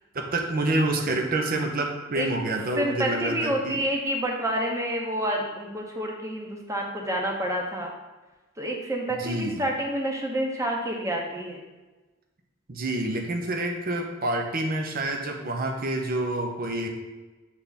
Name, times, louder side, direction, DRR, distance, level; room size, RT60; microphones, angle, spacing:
voice 1, 0.1-3.8 9.1-9.6 12.7-16.9, right 2 dB, 50° right, 2 dB, 0.8 m, -28 dB
voice 2, 2.1-7.9 8.6-11.6, right 1 dB, 15° right, 0 dB, 0.9 m, -29 dB
7.3 x 3.5 x 4.1 m, 1.2 s
head